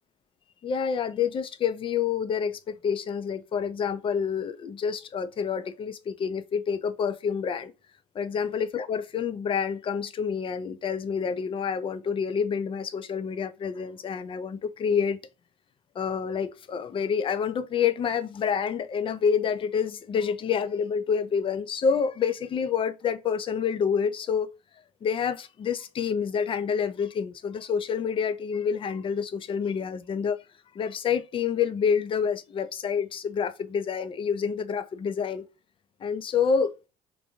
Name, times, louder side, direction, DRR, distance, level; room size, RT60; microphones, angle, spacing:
voice 1, 0.6-7.7 8.1-15.2 16.0-24.5 25.0-30.4 30.7-35.5 36.0-36.7, left 6 dB, 40° left, 0.5 m, -28 dB
2.6 x 2.2 x 2.9 m
supercardioid pair, 75°, 14 cm